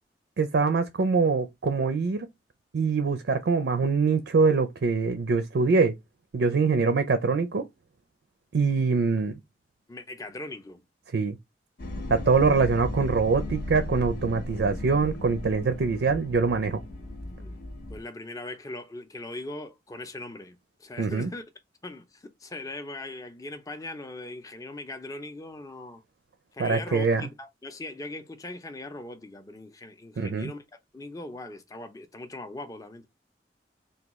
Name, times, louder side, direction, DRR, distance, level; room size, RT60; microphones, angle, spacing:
voice 1, 0.4-2.3 2.7-5.9 6.3-7.6 8.5-9.4 11.1-11.4 12.1-16.8 21.0-21.3 26.6-27.3 30.2-30.5, right 4 dB, 70° right, 0.4 m, -24 dB
voice 2, 9.9-10.8 12.4-12.6 17.4-17.6 17.9-21.4 21.8-26.0 26.5-30.6 30.9-33.1, left 2 dB, 20° left, 0.5 m, -40 dB
sound 1, 11.8-18.0, left 1 dB, 65° left, 0.8 m, -36 dB
3.4 x 2.3 x 3.0 m
head